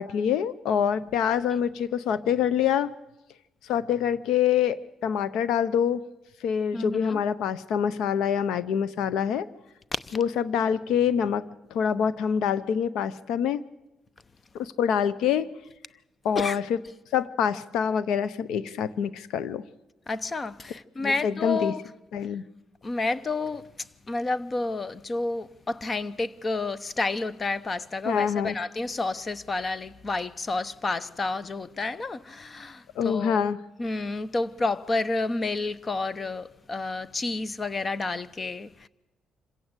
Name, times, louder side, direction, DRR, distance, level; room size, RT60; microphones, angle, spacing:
voice 1, 0.0-2.9 3.6-4.8 5.0-6.0 6.4-9.5 10.1-13.6 14.6-15.5 16.2-16.8 17.1-19.6 21.0-21.7 22.1-22.4 28.0-28.5 33.0-33.6, left 8 dB, 85° left, 0.8 m, -25 dB
voice 2, 6.7-7.2 9.9-10.2 16.4-16.6 20.1-21.8 22.8-23.7 24.1-33.4 33.8-38.9, left 3 dB, 35° left, 0.8 m, -30 dB
26.0 x 16.0 x 8.2 m
cardioid pair, 90°, 0 cm